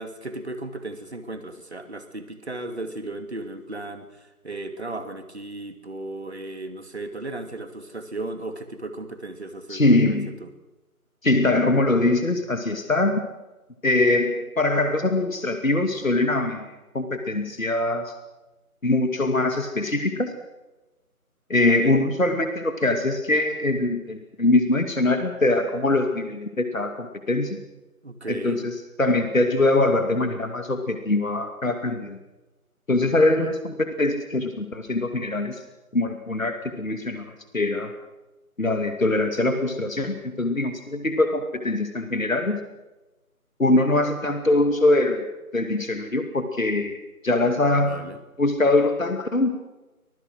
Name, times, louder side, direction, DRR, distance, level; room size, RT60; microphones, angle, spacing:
voice 1, 0.0-10.5 21.5-22.0 28.0-28.6 33.1-33.5 47.6-48.2, right 2 dB, 45° right, 8 dB, 2.7 m, -36 dB
voice 2, 9.7-10.4 11.2-13.2 13.8-18.1 18.8-20.3 21.5-27.6 28.3-28.7 29.0-32.2 32.9-35.6 35.9-37.9 38.6-42.6 43.6-45.2 45.5-47.0 47.2-48.0 48.4-49.6, left 2 dB, 60° left, 7 dB, 2.6 m, -23 dB
25.0 x 20.5 x 6.3 m, 1.0 s
figure-of-eight pair, 165°, 44 cm